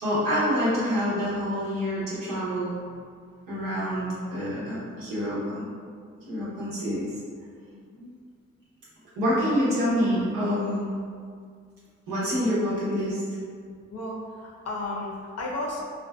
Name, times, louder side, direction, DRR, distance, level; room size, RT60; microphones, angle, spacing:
voice 1, 0.0-2.7 3.5-5.7 6.3-7.1 9.2-10.8 12.1-13.2, equal, 80° right, -9 dB, 0.9 m, -26 dB
voice 2, 7.7-8.1 13.9-15.8, left 2 dB, 50° left, -3 dB, 0.6 m, -34 dB
2.6 x 2.4 x 2.3 m, 2.1 s
supercardioid pair, 40°, 33 cm